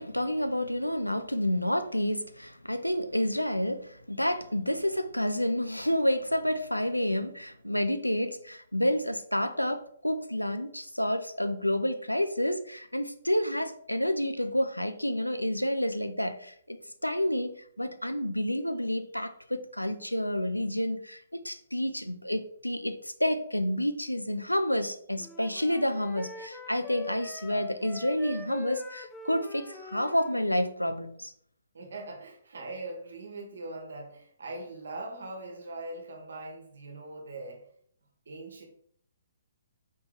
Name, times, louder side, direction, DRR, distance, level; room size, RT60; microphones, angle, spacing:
voice 1, 0.0-31.3, left 1 dB, 90° left, 0.4 m, -29 dB
Wind instrument woodwind instrument, 25.2-30.4, left 3 dB, 10° left, 0.3 m, -44 dB
voice 2, 31.7-37.7 38.3-38.6, right 2 dB, 60° right, 1.1 m, -41 dB
4.2 x 3.6 x 3.1 m
figure-of-eight pair, 125°, 0 cm